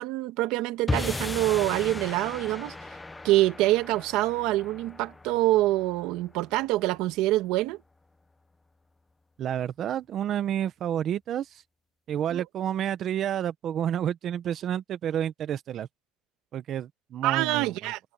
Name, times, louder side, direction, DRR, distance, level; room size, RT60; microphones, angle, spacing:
voice 1, 0.0-2.8 3.2-7.8 12.3-12.4 17.2-18.0, right 17 dB, 85° right, 1.6 m, -25 dB
sound 1, 0.9-7.2, left 2 dB, 10° left, 0.7 m, -36 dB
voice 2, 9.4-11.5 12.1-15.9 16.5-17.9, right 10 dB, 45° right, 0.9 m, -30 dB
cardioid pair, 160°, 0 cm